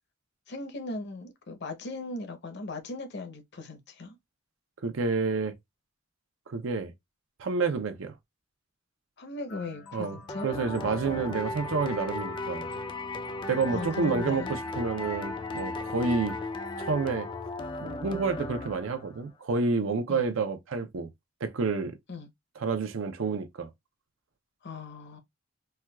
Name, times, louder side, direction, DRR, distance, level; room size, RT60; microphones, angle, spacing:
voice 1, 0.5-4.2 9.2-10.5 11.3-11.8 13.7-14.6 20.1-20.2 22.1-22.3 24.6-25.2, left 3 dB, 55° left, 0.7 m, -38 dB
voice 2, 4.8-5.5 6.5-6.9 7.4-8.1 9.9-12.7 13.5-16.3 16.8-17.3 17.8-21.1 21.4-21.9 22.6-23.7, right 4 dB, 75° right, 0.6 m, -29 dB
sound 1, 9.5-16.5, left 3 dB, 75° left, 1.1 m, -47 dB
sound 2, 10.3-19.2, left 2 dB, 25° left, 0.3 m, -36 dB
4.3 x 2.3 x 2.2 m
head